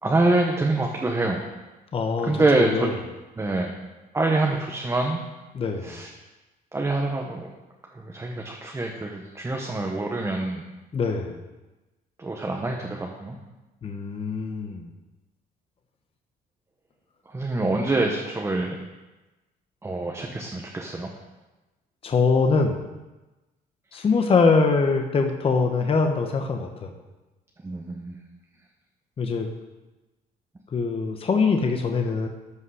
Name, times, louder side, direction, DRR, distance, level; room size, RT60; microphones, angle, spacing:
voice 1, 0.0-1.4 2.2-2.9 3.4-3.8 4.1-5.2 5.8-6.1 6.7-7.5 7.9-10.6 12.2-13.4 17.3-18.8 19.8-21.1 27.6-28.2, right 2 dB, 15° right, 1 dB, 1.1 m, -25 dB
voice 2, 1.9-2.9 5.5-6.0 10.9-11.4 13.8-14.9 22.0-22.9 23.9-26.9 29.2-29.5 30.7-32.3, left 4 dB, 35° left, 4 dB, 1.0 m, -23 dB
13.0 x 5.6 x 4.9 m, 1.1 s
cardioid pair, 110°, 17 cm